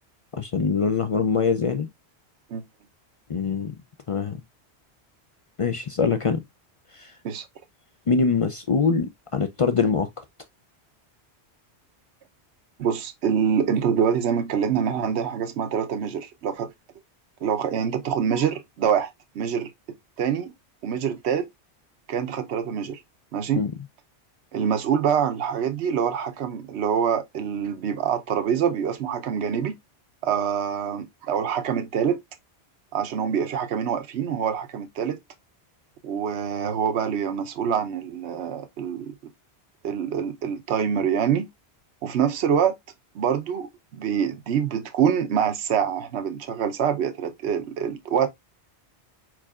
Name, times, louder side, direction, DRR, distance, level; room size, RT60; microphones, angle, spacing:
voice 1, 0.3-1.9 3.3-3.8 4.1-4.4 5.6-6.4 6.9-7.1 8.1-10.2 23.6-23.7, left 5 dB, 55° left, 0.3 m, -23 dB
voice 2, 12.8-16.7 17.4-19.7 20.2-20.5 20.8-21.5 22.1-23.0 23.3-23.6 24.5-29.7 30.2-32.2 32.9-35.2 36.0-39.2 39.8-41.5 42.0-42.7 43.1-48.3, right 8 dB, 75° right, 1.0 m, -25 dB
4.8 x 4.7 x 2.3 m
omnidirectional pair, 1.1 m